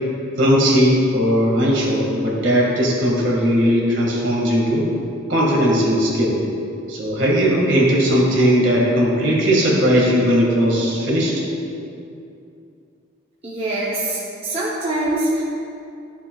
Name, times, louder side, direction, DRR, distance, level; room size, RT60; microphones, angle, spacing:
voice 1, 0.4-4.9 5.3-6.4 6.9-11.3, equal, 65° right, -4 dB, 1.9 m, -18 dB
voice 2, 13.4-15.4, right 1 dB, 30° right, -7 dB, 0.8 m, -23 dB
12.0 x 6.9 x 2.4 m, 2.6 s
head